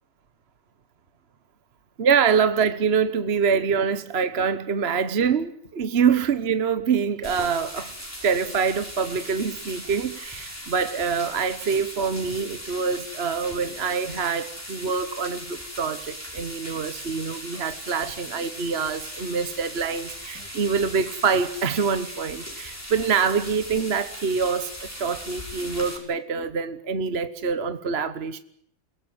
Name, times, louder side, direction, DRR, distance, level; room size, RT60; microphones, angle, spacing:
voice 1, 2.0-7.9 8.2-28.4, right 6 dB, 40° right, 1.0 m, -25 dB
sound 1, 7.2-26.0, equal, 5° left, 5.1 m, -39 dB
sound 2, 17.6-17.7 18.0-18.2 20.3-20.5 20.8-21.0, left 2 dB, 50° left, 4.3 m, -47 dB
28.5 x 17.5 x 9.5 m
omnidirectional pair, 2.4 m